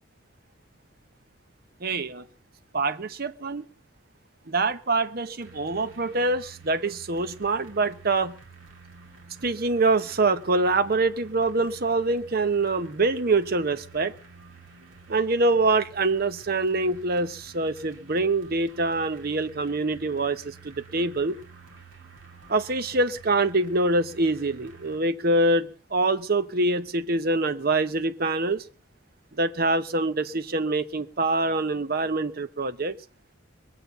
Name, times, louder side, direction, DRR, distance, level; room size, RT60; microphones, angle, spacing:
voice 1, 1.8-2.2 2.7-3.6 4.5-8.3 9.4-14.1 15.1-21.3 22.5-28.6 29.4-32.9, right 2 dB, 50° right, 11 dB, 0.9 m, -25 dB
sound 1, 5.4-25.0, right 5 dB, 80° right, 2.4 m, -50 dB
21.5 x 7.7 x 6.7 m, 0.43 s
head